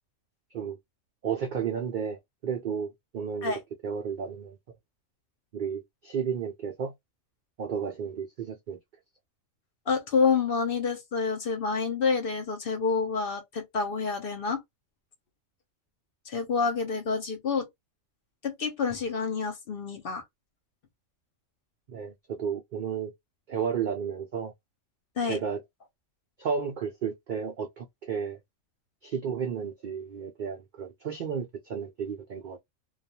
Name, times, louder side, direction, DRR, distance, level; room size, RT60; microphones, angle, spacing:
voice 1, 1.2-4.6 5.5-6.9 7.6-8.8 21.9-23.1 23.5-24.5 25.2-25.6 26.4-28.4 29.0-32.6, right 7 dB, 85° right, 0.4 m, -33 dB
voice 2, 9.9-14.6 16.3-17.7 18.4-20.2 25.2-25.4, left 5 dB, 55° left, 0.7 m, -28 dB
2.4 x 2.3 x 2.7 m
omnidirectional pair, 1.4 m